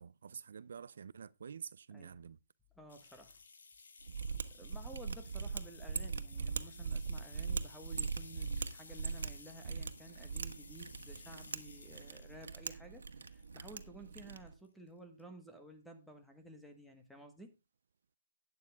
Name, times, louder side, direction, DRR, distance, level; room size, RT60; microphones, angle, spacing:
voice 1, 0.0-2.4, right 6 dB, 65° right, 0.5 m, -48 dB
voice 2, 2.7-3.4 4.5-17.5, right 1 dB, ahead, 1.3 m, -54 dB
sound 1, 2.9-13.8 14.3-14.9 15.2-15.3, left 4 dB, 85° left, 3.9 m, -57 dB
Mechanisms, 4.0-14.5, right 5 dB, 80° right, 1.5 m, -41 dB
12.0 x 9.5 x 3.5 m
hypercardioid pair, 170°, 0 cm